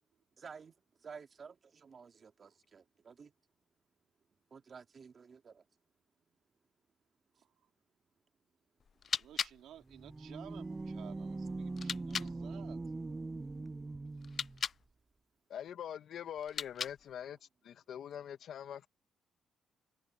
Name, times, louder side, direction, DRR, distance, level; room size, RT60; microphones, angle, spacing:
voice 1, 0.4-3.3 4.5-5.6, right 5 dB, 45° right, 3.1 m, -53 dB
sound 1, 8.8-12.4 14.2-14.9 16.4-17.2, left 7 dB, 50° left, 0.3 m, -41 dB
voice 2, 9.1-12.8, right 11 dB, 75° right, 3.5 m, -54 dB
sound 2, 9.8-14.6, right 3 dB, 20° right, 0.5 m, -42 dB
voice 3, 15.5-17.4 17.6-18.9, left 9 dB, 65° left, 1.1 m, -43 dB
cardioid pair, 90°, 0 cm